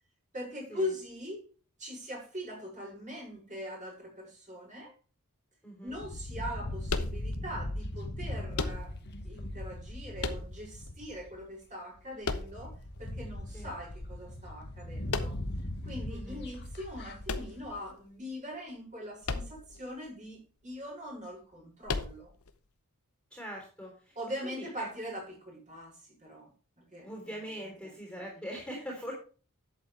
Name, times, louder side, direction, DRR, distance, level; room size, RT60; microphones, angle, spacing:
voice 1, 0.3-1.5 1.8-4.9 5.8-9.0 9.2-15.4 15.8-22.3 24.1-26.5 26.8-27.1 27.8-28.2, equal, 35° right, -3 dB, 6.6 m, -41 dB
voice 2, 5.6-6.0 13.5-13.7 16.1-16.4 23.3-24.2 24.4-24.9 27.0-29.1, equal, 5° left, -1 dB, 3.6 m, -42 dB
sound 1, 5.9-11.4 12.0-12.1 12.3-17.8, left 1 dB, 50° left, 1.4 m, -40 dB
sound 2, 6.9-7.6 8.5-9.2 10.2-10.9 12.2-13.0 15.1-15.7 17.2-18.1 19.2-19.8 20.1-20.2 21.8-22.5, left 4 dB, 80° left, 1.0 m, -35 dB
11.5 x 8.3 x 3.4 m, 0.37 s
head